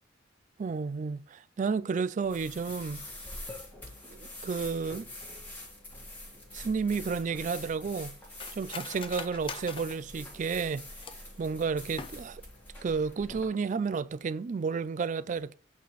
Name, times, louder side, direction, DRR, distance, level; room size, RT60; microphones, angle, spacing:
voice 1, 0.6-3.0 4.1-5.1 6.5-8.2 8.5-10.9 11.4-12.4 12.8-15.5, right 5 dB, 40° right, 0.3 m, -31 dB
sound 1, 2.2-13.5, left 1 dB, 10° left, 1.8 m, -45 dB
Cutlery silverware, 6.9-11.4 11.8-12.5 12.9-13.0 13.3-13.7 14.0-14.2, left 5 dB, 30° left, 0.5 m, -44 dB
8.0 x 4.2 x 3.1 m
head